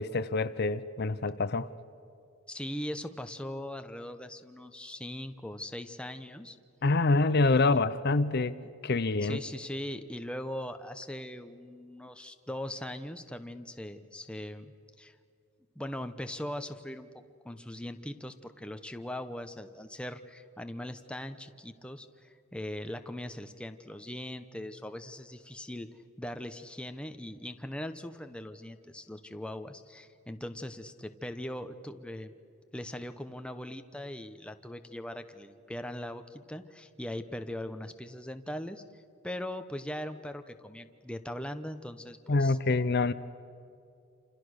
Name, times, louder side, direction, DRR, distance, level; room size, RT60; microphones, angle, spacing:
voice 1, 0.0-1.7 6.8-8.6 8.8-9.4 42.3-43.1, left 3 dB, 45° left, 13 dB, 0.6 m, -26 dB
voice 2, 2.5-6.6 9.2-15.2 15.7-17.1 17.4-25.9 26.2-32.3 32.7-42.6 43.0-43.1, left 1 dB, 5° left, 8 dB, 0.9 m, -40 dB
28.5 x 28.0 x 6.6 m, 2.5 s
head